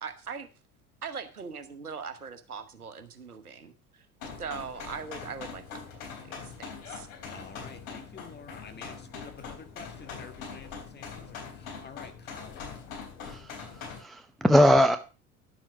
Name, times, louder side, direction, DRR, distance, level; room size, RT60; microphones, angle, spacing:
voice 1, 0.0-0.5 1.0-4.1 4.4-7.1, right 6 dB, 90° right, 1.2 m, -41 dB
sound 1, 4.2-14.0, left 5 dB, 60° left, 3.8 m, -42 dB
voice 2, 7.3-12.7, left 5 dB, 25° left, 1.8 m, -49 dB
voice 3, 13.2-15.0, equal, ahead, 0.7 m, -22 dB
11.0 x 7.5 x 4.8 m
figure-of-eight pair, 75°, 43 cm